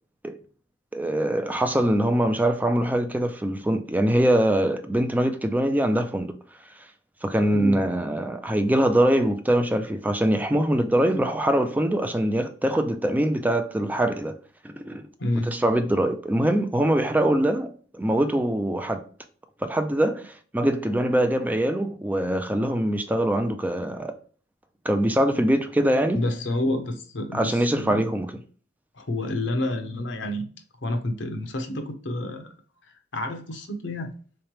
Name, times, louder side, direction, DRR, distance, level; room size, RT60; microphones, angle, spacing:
voice 1, 0.9-6.4 7.2-14.4 14.6-15.1 15.5-19.1 19.6-24.1 24.8-26.2 27.3-28.4, right 1 dB, 10° right, 0.4 m, -23 dB
voice 2, 7.5-7.8 15.2-15.5 26.1-28.0 28.9-30.5 30.8-32.5 33.1-34.1, left 1 dB, 70° left, 0.8 m, -29 dB
3.6 x 3.2 x 3.0 m
head